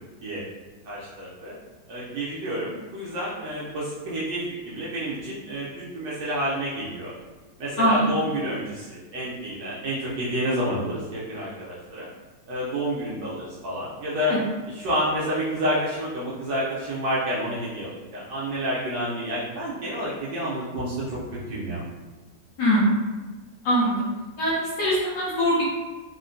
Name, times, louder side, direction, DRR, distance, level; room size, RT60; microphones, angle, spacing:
voice 1, 0.8-1.6 1.9-7.1 7.6-12.1 12.5-14.4 14.7-21.2 21.5-21.8, equal, 70° right, -7 dB, 1.1 m, -29 dB
voice 2, 7.8-8.1 14.3-14.4 22.6-23.0 23.6-24.1 24.4-25.7, equal, 70° left, -7 dB, 1.1 m, -22 dB
3.7 x 2.1 x 2.5 m, 1.2 s
omnidirectional pair, 2.4 m